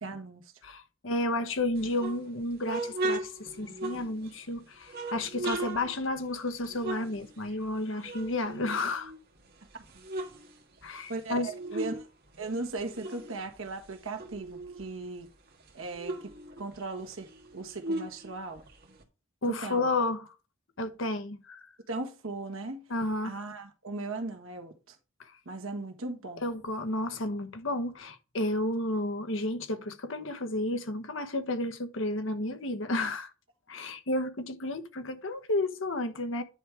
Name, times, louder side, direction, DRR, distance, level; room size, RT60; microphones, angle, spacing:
voice 1, 0.0-0.4 9.7-9.8 11.1-12.1 12.4-15.3 15.7-16.3 16.6-17.3 17.5-18.7 19.5-19.9 21.9-22.8 23.2-25.0 25.4-26.5, right 3 dB, 85° right, 1.5 m, -38 dB
voice 2, 0.6-9.1 10.8-11.5 19.4-20.3 20.8-21.7 22.9-23.3 25.2-25.3 26.4-33.3 33.7-36.4, left 2 dB, 70° left, 1.1 m, -32 dB
sound 1, 1.8-4.4 4.9-7.8 8.0-9.4 9.8-12.0 12.3-14.9 15.3-15.4 15.6-19.0, right 2 dB, 50° right, 1.7 m, -37 dB
9.9 x 3.5 x 4.7 m
head